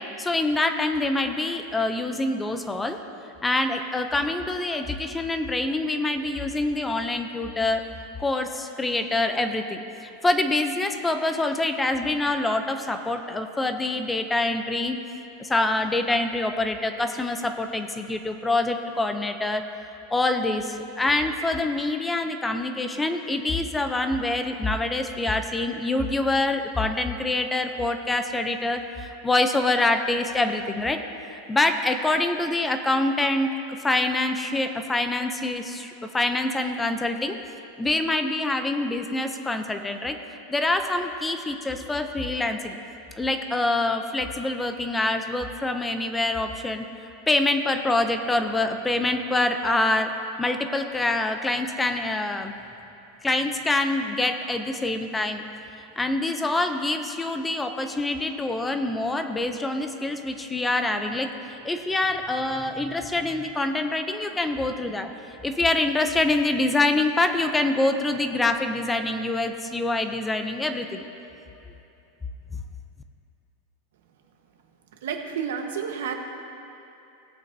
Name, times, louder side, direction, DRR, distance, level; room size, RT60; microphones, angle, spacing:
voice 1, 0.0-3.0 3.4-7.8 8.2-15.0 15.4-19.6 20.1-31.0 31.3-33.5 33.8-37.4 37.8-40.2 40.5-42.8 43.2-46.8 47.3-50.1 50.4-52.5 53.2-55.4 55.8-65.1 65.4-71.0 72.5-72.6, left 2 dB, 10° left, 7 dB, 0.4 m, -25 dB
voice 2, 75.0-76.1, right 7 dB, 90° right, 4 dB, 1.1 m, -30 dB
18.0 x 8.3 x 2.7 m, 2.8 s
supercardioid pair, 170°, 0 cm